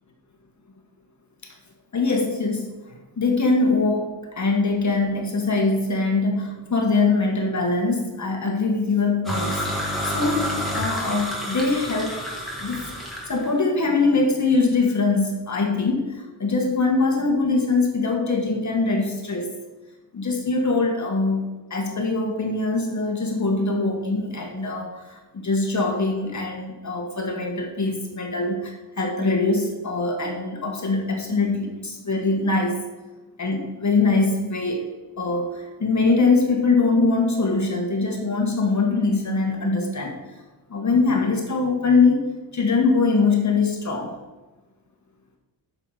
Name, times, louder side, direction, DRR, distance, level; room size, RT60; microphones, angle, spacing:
voice 1, 1.9-9.6 10.0-12.1 12.6-12.9 13.3-19.5 20.1-32.8 33.4-34.8 35.2-40.2 40.7-42.2 42.5-44.1, left 3 dB, 35° left, 1 dB, 1.7 m, -22 dB
sound 1, 9.2-13.4, equal, ahead, 3.0 m, -29 dB
9.8 x 6.8 x 4.9 m, 1.2 s
cardioid pair, 120°, 49 cm